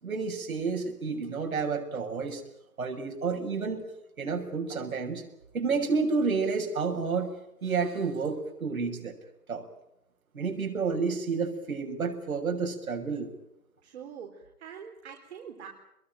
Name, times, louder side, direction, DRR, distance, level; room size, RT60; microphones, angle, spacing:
voice 1, 0.0-2.4 2.8-3.8 4.2-5.2 5.5-7.3 7.6-9.1 9.5-9.6 10.3-13.3, right 4 dB, 65° right, 3 dB, 6.9 m, -30 dB
voice 2, 13.8-15.7, right 7 dB, 45° right, 1 dB, 4.1 m, -44 dB
26.5 x 22.0 x 9.2 m, 0.83 s
figure-of-eight pair, 135°, 46 cm